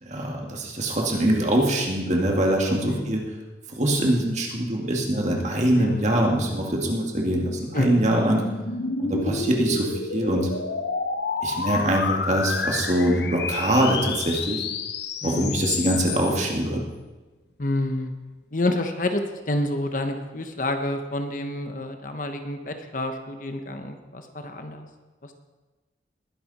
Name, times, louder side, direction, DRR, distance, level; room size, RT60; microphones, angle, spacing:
voice 1, 0.0-3.2 3.7-8.4 9.0-10.5 11.4-14.6 15.2-16.8, right 1 dB, 40° right, 0 dB, 2.3 m, -23 dB
voice 2, 5.8-6.2 7.7-7.9 15.2-15.6 17.6-18.1 18.5-24.9, left 1 dB, 45° left, 6 dB, 1.1 m, -28 dB
sound 1, 7.1-16.5, left 4 dB, 70° left, 0.9 m, -30 dB
20.0 x 10.5 x 4.3 m, 1.2 s
head